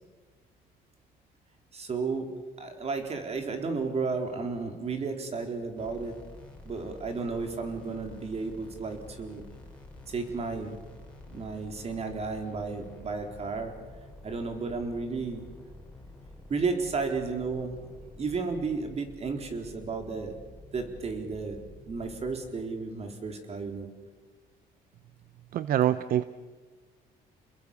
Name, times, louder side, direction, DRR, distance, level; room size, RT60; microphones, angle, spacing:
voice 1, 1.7-2.3 2.6-6.2 6.6-9.4 10.1-10.8 11.3-13.7 14.2-15.4 16.5-17.8 18.2-20.3 20.7-21.6 21.9-23.9, right 4 dB, 40° right, 5 dB, 4.1 m, -33 dB
sound 1, 5.7-22.5, left 2 dB, 5° left, 6.1 m, -49 dB
voice 2, 25.5-26.2, right 11 dB, 60° right, 14 dB, 0.7 m, -25 dB
28.5 x 21.5 x 7.1 m, 1.4 s
cardioid pair, 110°, 17 cm